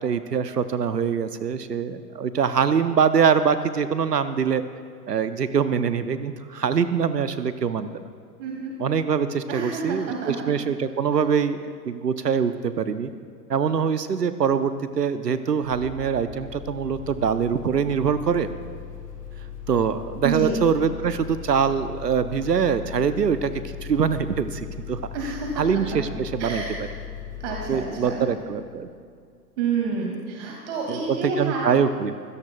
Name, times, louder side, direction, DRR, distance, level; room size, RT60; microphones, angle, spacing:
voice 1, 0.0-4.6 5.1-8.0 8.8-13.1 13.5-18.5 19.7-25.0 25.6-26.6 27.7-28.9 30.9-32.1, right 6 dB, 85° right, 12 dB, 0.8 m, -24 dB
voice 2, 8.4-8.7 9.5-10.5 20.2-20.6 25.1-25.6 25.9-26.0 26.4-26.9 27.4-28.3 29.6-31.7, right 5 dB, 45° right, 0 dB, 2.2 m, -29 dB
sound 1, 15.6-29.1, left 8 dB, 85° left, 2.4 m, -39 dB
24.5 x 16.5 x 2.3 m, 2.2 s
figure-of-eight pair, 100°, 47 cm